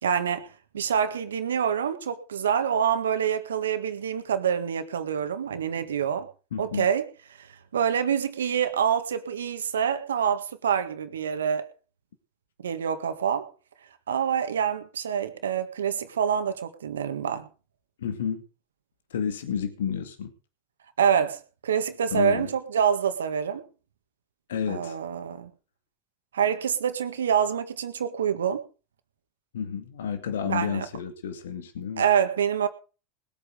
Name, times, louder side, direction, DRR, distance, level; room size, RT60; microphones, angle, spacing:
voice 1, 0.0-6.3 6.6-7.0 7.4-7.5 7.7-11.7 12.6-13.5 14.1-17.5 21.0-23.6 24.7-25.5 26.3-28.6 30.4-30.9 32.0-32.7, right 8 dB, 80° right, 9 dB, 1.7 m, -26 dB
voice 2, 6.5-6.9 18.0-18.4 19.1-20.3 22.1-22.5 24.5-25.0 29.5-32.0, left 7 dB, 75° left, 7 dB, 2.1 m, -30 dB
20.0 x 8.6 x 5.2 m, 0.36 s
hypercardioid pair, 80°, 0 cm